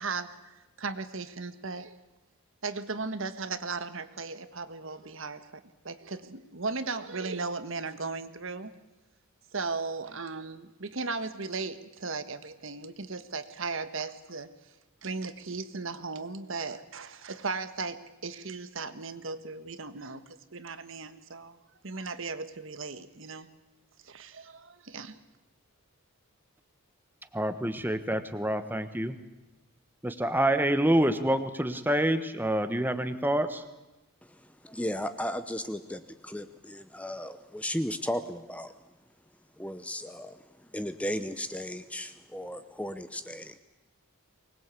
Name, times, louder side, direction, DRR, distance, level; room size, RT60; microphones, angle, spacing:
voice 1, 0.0-2.0 2.6-8.7 9.5-14.5 15.0-21.6 21.8-23.5 24.0-25.2, right 4 dB, 60° right, 11 dB, 1.4 m, -37 dB
voice 2, 27.3-29.1 30.0-33.6, right 1 dB, 10° right, 9 dB, 1.2 m, -27 dB
voice 3, 34.2-38.7 39.6-43.6, equal, 5° left, 10 dB, 0.9 m, -35 dB
24.0 x 20.5 x 8.3 m, 1.0 s
head